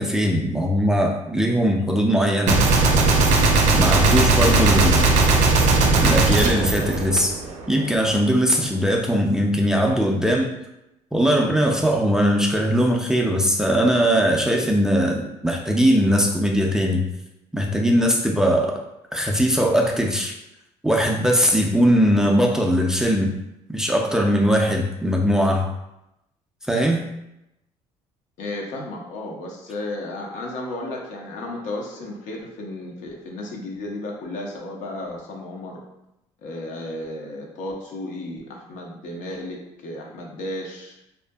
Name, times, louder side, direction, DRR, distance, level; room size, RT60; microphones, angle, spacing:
voice 1, 0.0-2.6 3.7-5.1 6.0-7.4 7.7-10.5 11.1-17.1 17.5-18.8 19.1-20.3 20.8-23.4 23.7-25.7 26.7-27.0, equal, 5° right, 0 dB, 0.3 m, -20 dB
Gunshot gunfire, 2.5-7.7, right 3 dB, 65° right, 0.4 m, -18 dB
voice 2, 28.4-35.8 36.4-41.0, left 1 dB, 75° left, 0 dB, 0.6 m, -33 dB
2.6 x 2.5 x 2.2 m, 0.86 s
cardioid pair, 110°, 13 cm